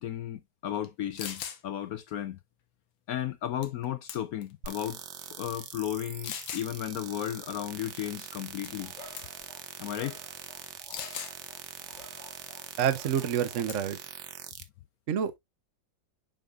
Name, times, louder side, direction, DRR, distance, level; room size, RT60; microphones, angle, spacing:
voice 1, 0.0-2.4 3.1-5.0 5.4-8.9 9.8-10.2, left 11 dB, 70° left, 0.8 m, -34 dB
sound 1, 0.8-0.9 1.2-1.6 3.6-3.8 4.1-4.5 5.2-5.3 6.2-6.7 8.6-8.9 9.2-9.4 10.9-11.4 13.2-13.4 13.7-14.0, left 9 dB, 90° left, 1.8 m, -39 dB
sound 2, 4.6-14.6, right 9 dB, 80° right, 1.7 m, -43 dB
Dog, 8.6-13.6, left 2 dB, 25° left, 1.8 m, -52 dB
voice 2, 12.8-14.0 15.1-15.3, right 9 dB, 55° right, 0.9 m, -28 dB
7.5 x 5.3 x 2.3 m
omnidirectional pair, 2.1 m